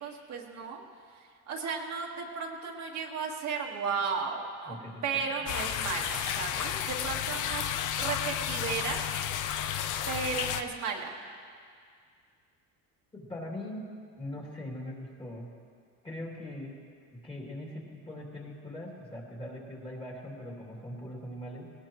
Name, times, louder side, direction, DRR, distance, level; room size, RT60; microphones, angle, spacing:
voice 1, 0.0-0.8 1.2-4.8 5.0-7.7 8.0-9.0 10.1-11.1, right 5 dB, 50° right, -1 dB, 1.8 m, -34 dB
voice 2, 4.7-5.5 13.1-13.9 14.2-15.5 16.0-16.8 17.1-21.7, left 1 dB, 15° left, -3 dB, 2.8 m, -41 dB
sound 1, 5.5-10.6, left 10 dB, 60° left, 0.8 m, -32 dB
19.5 x 19.0 x 3.1 m, 2.2 s
cardioid pair, 135°, 35 cm